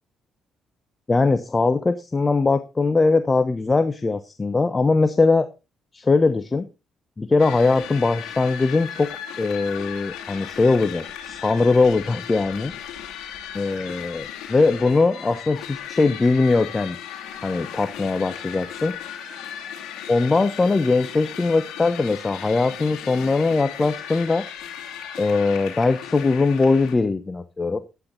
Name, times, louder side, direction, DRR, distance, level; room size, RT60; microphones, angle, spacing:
voice 1, 1.1-5.5 5.9-6.7 7.2-9.1 9.4-12.7 13.5-17.0 17.4-18.9 20.1-24.4 25.2-27.8, left 3 dB, 30° left, 10 dB, 1.1 m, -21 dB
sound 1, 7.4-26.9, left 9 dB, 85° left, 2.8 m, -36 dB
12.0 x 9.6 x 4.0 m, 0.28 s
supercardioid pair, 75°, 0 cm